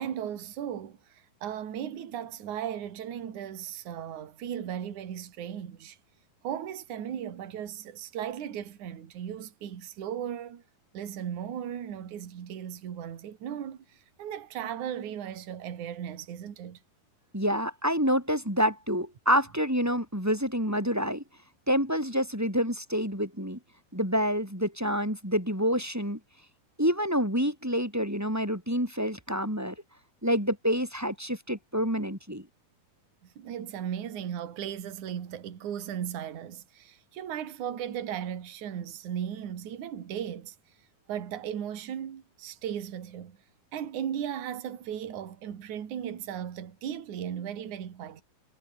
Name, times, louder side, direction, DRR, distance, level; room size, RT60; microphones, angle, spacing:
voice 1, 0.0-6.0 6.4-10.6 10.9-16.8 33.4-40.6 41.1-43.4 43.7-48.2, right 9 dB, 55° right, 3.6 m, -36 dB
voice 2, 17.3-21.2 21.7-23.6 23.9-26.2 26.8-29.7 30.2-32.5, equal, 5° right, 6.3 m, -27 dB
omnidirectional pair, 4.4 m